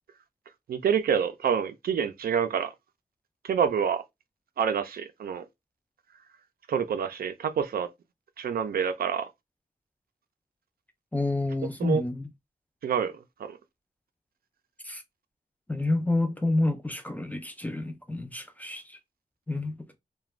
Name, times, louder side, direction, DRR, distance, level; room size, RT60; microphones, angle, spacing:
voice 1, 0.7-2.7 3.4-4.0 4.6-5.5 6.7-7.9 8.4-9.3 11.8-12.0 12.8-13.6, right 7 dB, 70° right, 0.4 m, -27 dB
voice 2, 11.1-12.3 14.8-15.0 15.7-19.0 19.5-19.8, left 2 dB, 10° left, 0.3 m, -29 dB
2.4 x 2.2 x 3.1 m
wide cardioid pair, 175°, 16 cm